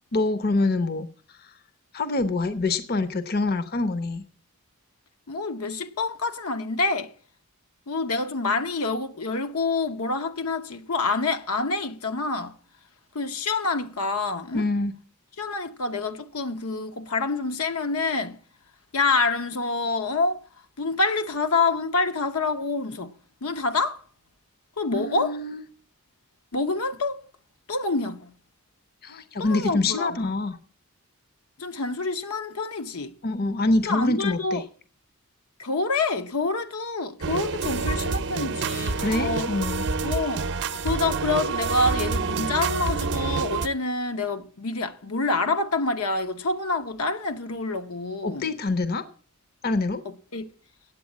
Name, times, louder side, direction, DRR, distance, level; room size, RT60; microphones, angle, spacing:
voice 1, 0.1-1.1 1.9-4.2 14.5-14.9 24.9-25.6 29.0-30.6 33.2-34.6 39.0-39.8 48.2-49.0 49.6-50.0, left 2 dB, 45° left, 0.7 m, -25 dB
voice 2, 5.3-7.1 7.9-12.6 13.1-14.7 15.4-18.4 18.9-20.4 20.8-23.1 23.4-24.0 24.8-25.4 26.5-27.2 27.7-28.3 29.4-30.2 31.6-33.2 33.9-34.6 35.6-39.5 40.0-40.5 40.8-48.5 50.3-50.4, left 3 dB, 75° left, 0.9 m, -27 dB
sound 1, 37.2-43.7, right 4 dB, 50° right, 0.6 m, -27 dB
8.7 x 8.4 x 8.3 m
head